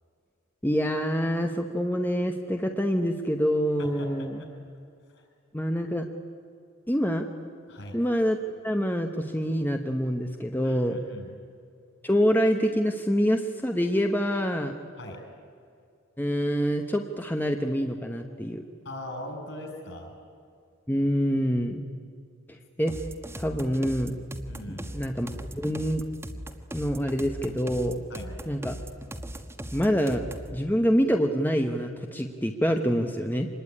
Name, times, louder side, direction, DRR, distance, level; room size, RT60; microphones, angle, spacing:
voice 1, 0.6-4.4 5.5-6.1 6.9-7.3 7.9-11.0 12.0-14.7 16.2-18.6 20.9-21.8 22.5-22.9 23.4-24.2 24.7-25.3 25.6-26.0 26.7-28.0 28.5-28.8 29.7-30.2 30.5-33.5, equal, 10° left, 4 dB, 1.0 m, -26 dB
voice 2, 10.6-11.3 15.0-15.2 18.8-20.1 24.5-24.9 28.1-28.3, left 1 dB, 60° left, 3 dB, 7.1 m, -40 dB
sound 1, 22.9-30.6, right 1 dB, 10° right, 1.3 m, -38 dB
26.0 x 21.0 x 9.9 m, 2.3 s
head